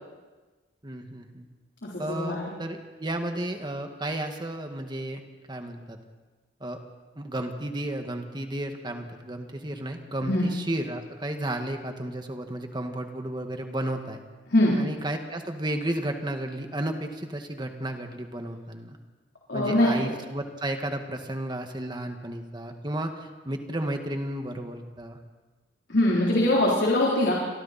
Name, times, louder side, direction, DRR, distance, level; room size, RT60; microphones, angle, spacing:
voice 1, 0.8-1.5 2.0-5.2 5.5-6.0 6.6-6.8 7.2-14.2 14.8-19.0 19.5-25.2, right 1 dB, 25° right, 5 dB, 1.9 m, -33 dB
voice 2, 1.8-2.5 10.2-10.4 14.5-14.8 19.5-20.1 25.9-27.3, left 1 dB, 70° left, -4 dB, 3.8 m, -23 dB
29.5 x 23.0 x 4.4 m, 1.3 s
head